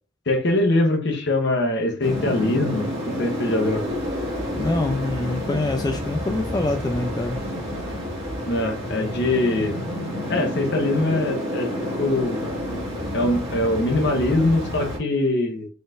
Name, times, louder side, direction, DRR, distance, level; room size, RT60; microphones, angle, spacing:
voice 1, 0.3-3.8 8.5-9.8 10.3-11.7 12.0-12.5 13.1-15.7, left 2 dB, 60° left, 5 dB, 0.9 m, -22 dB
sound 1, 2.0-15.0, equal, 30° right, 1.9 m, -29 dB
voice 2, 4.6-7.4, left 2 dB, 20° left, 5 dB, 0.3 m, -25 dB
4.0 x 3.9 x 2.5 m, 0.38 s
head